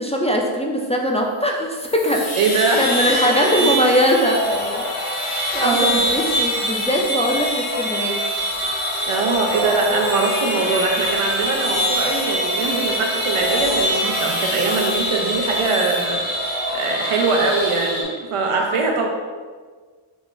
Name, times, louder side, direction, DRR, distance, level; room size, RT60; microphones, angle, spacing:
voice 1, 0.0-2.3 2.8-4.9 5.5-8.2 18.5-18.8, equal, 15° left, -1 dB, 0.3 m, -21 dB
sound 1, 1.8-18.0, equal, 85° left, 1.1 m, -24 dB
voice 2, 2.4-2.8 3.1-3.7 5.5-6.1 9.1-19.1, right 4 dB, 85° right, 1 dB, 0.6 m, -22 dB
4.0 x 2.4 x 3.7 m, 1.5 s
wide cardioid pair, 85°, 50 cm